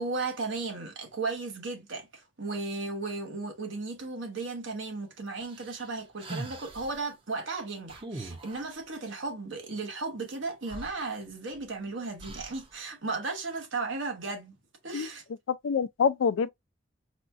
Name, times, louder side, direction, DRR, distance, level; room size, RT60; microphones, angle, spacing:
voice 1, 0.0-14.6 14.8-15.2, right 3 dB, 75° right, 1.0 m, -35 dB
sound 1, 5.4-7.0 7.9-8.8 10.3-10.4 10.7-11.6 12.2-12.7, right 1 dB, 25° right, 0.6 m, -42 dB
voice 2, 15.5-16.5, left 6 dB, 80° left, 0.3 m, -26 dB
4.2 x 2.2 x 2.5 m
head